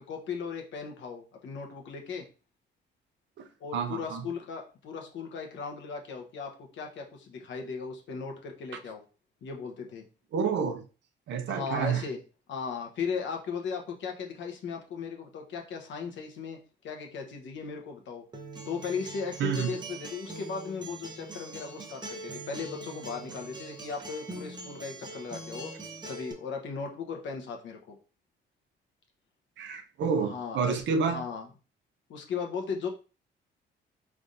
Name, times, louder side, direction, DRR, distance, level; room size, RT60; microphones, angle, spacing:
voice 1, 0.0-2.3 3.6-9.0 9.4-10.0 11.5-12.2 12.5-18.2 18.7-28.0 30.2-30.8 31.1-31.5 32.1-32.9, left 5 dB, 70° left, 3 dB, 1.0 m, -37 dB
voice 2, 3.4-4.2 10.3-10.8 11.3-12.1 19.4-19.8 29.6-31.2, right 6 dB, 65° right, 8 dB, 0.6 m, -29 dB
Acoustic guitar, 18.3-26.3, right 2 dB, 20° right, 0.7 m, -42 dB
4.0 x 3.4 x 2.5 m, 0.35 s
cardioid pair, 90°, 20 cm